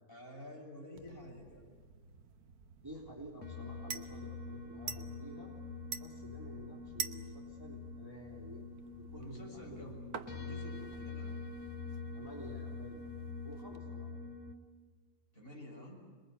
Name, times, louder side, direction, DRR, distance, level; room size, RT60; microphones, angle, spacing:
voice 1, 0.1-1.7 9.1-11.3 15.3-16.0, left 1 dB, 35° left, -1 dB, 7.3 m, -49 dB
sound 1, 1.0-13.8, right 7 dB, 70° right, 1.5 m, -49 dB
voice 2, 2.8-5.5 6.0-8.7 8.9-10.6 12.1-13.1 13.4-14.1, right 1 dB, 15° right, -2 dB, 3.7 m, -51 dB
sound 2, 3.4-14.5, left 4 dB, 50° left, 2.4 m, -45 dB
27.0 x 22.0 x 8.6 m, 1.5 s
omnidirectional pair, 1.7 m